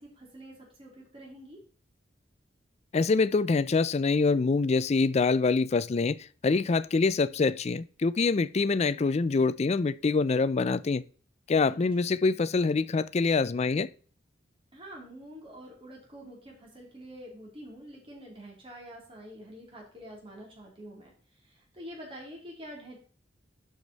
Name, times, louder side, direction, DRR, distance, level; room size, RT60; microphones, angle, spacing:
voice 1, 0.0-1.6 11.7-12.1 14.7-23.0, equal, 30° right, 3.1 m, -47 dB
voice 2, 2.9-6.2 6.4-11.0 11.5-13.9, left 4 dB, 35° left, 0.4 m, -25 dB
11.5 x 5.0 x 4.1 m
head